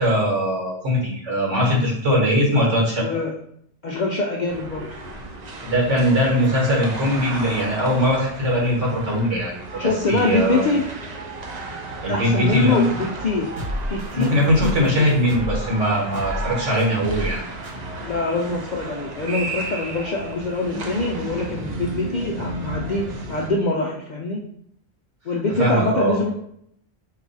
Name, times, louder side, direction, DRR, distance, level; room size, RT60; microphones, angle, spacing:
voice 1, 0.0-3.2 5.6-10.7 12.0-12.9 14.1-17.4 25.6-26.2, equal, 70° right, -3 dB, 1.5 m, -21 dB
voice 2, 3.0-3.3 3.8-4.9 9.8-10.8 12.1-13.5 13.9-15.1 18.0-24.4 25.3-26.3, left 3 dB, 60° left, -1 dB, 0.5 m, -24 dB
sound 1, 4.5-23.5, right 2 dB, 45° right, 0.6 m, -34 dB
sound 2, 13.6-15.6 16.1-16.5 16.8-17.3 17.6-17.7, left 1 dB, 90° right, 1.5 m, -30 dB
4.7 x 2.3 x 3.9 m, 0.69 s
omnidirectional pair, 1.3 m